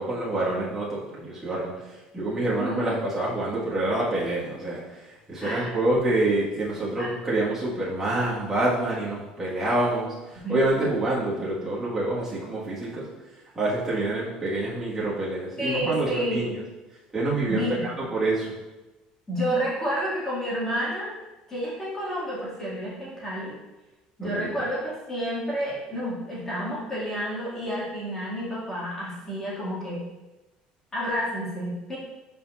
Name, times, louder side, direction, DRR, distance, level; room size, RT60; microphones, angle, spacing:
voice 1, 0.0-1.7 2.1-4.8 5.3-13.1 13.6-16.5 17.1-18.6 24.2-24.5, right 2 dB, 15° right, -8 dB, 1.8 m, -27 dB
voice 2, 2.6-3.0 5.4-5.8 7.0-7.1 10.4-10.6 15.6-16.5 17.5-17.7 19.3-21.2 21.5-23.6 24.2-30.0 30.9-32.0, equal, 15° left, -8 dB, 2.4 m, -30 dB
10.5 x 4.5 x 2.6 m, 1.1 s
cardioid pair, 175°, 3 cm